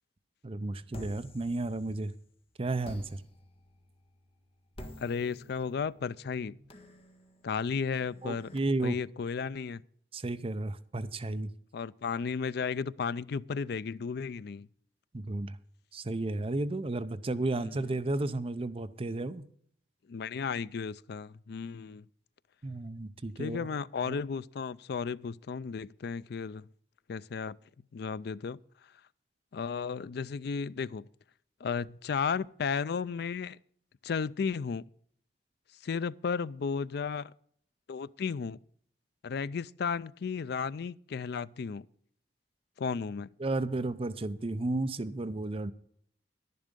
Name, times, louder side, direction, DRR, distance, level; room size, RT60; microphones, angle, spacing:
voice 1, 0.4-2.1 2.6-3.2 8.2-9.0 10.1-11.5 15.1-15.6 15.9-19.4 22.6-23.7 24.0-24.2 43.4-45.7, right 2 dB, 35° right, 0.6 m, -33 dB
sound 1, 0.9-2.3 2.8-8.6, equal, 35° left, 1.5 m, -50 dB
voice 2, 5.0-6.6 7.4-8.5 8.8-9.8 11.7-14.7 17.5-17.9 20.1-22.0 23.4-26.7 27.1-27.6 27.9-28.6 29.5-31.1 31.6-33.6 34.0-34.8 35.8-37.3 37.9-38.6 39.2-41.9 42.8-43.3, left 5 dB, 65° left, 0.4 m, -34 dB
11.5 x 11.0 x 5.2 m
head